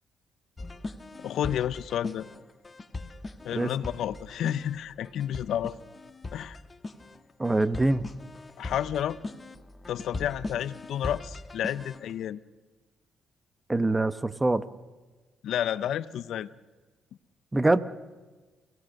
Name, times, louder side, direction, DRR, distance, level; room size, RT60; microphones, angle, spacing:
sound 1, 0.6-12.1, left 2 dB, 25° left, 1.3 m, -40 dB
voice 1, 1.2-2.3 3.4-5.8 6.3-6.6 8.6-9.2 9.9-12.4 15.4-16.5, left 10 dB, 75° left, 17 dB, 0.7 m, -30 dB
voice 2, 7.4-8.0 13.7-14.6 17.5-17.8, right 2 dB, 15° right, 14 dB, 1.0 m, -24 dB
29.0 x 17.5 x 6.5 m, 1.3 s
cardioid pair, 90°, 0 cm